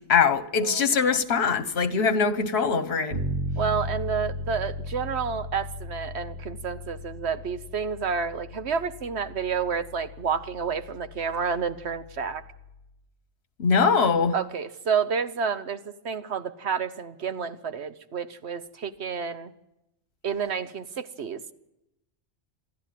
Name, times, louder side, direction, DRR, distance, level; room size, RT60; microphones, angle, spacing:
voice 1, 0.1-3.2 13.6-14.3, left 5 dB, 65° left, 1.4 m, -22 dB
Bass guitar, 3.1-12.9, left 1 dB, 45° right, 7.2 m, -37 dB
voice 2, 3.6-12.4 14.3-19.5 20.2-21.5, right 6 dB, 70° right, 1.2 m, -30 dB
27.5 x 12.0 x 9.2 m
omnidirectional pair, 1.2 m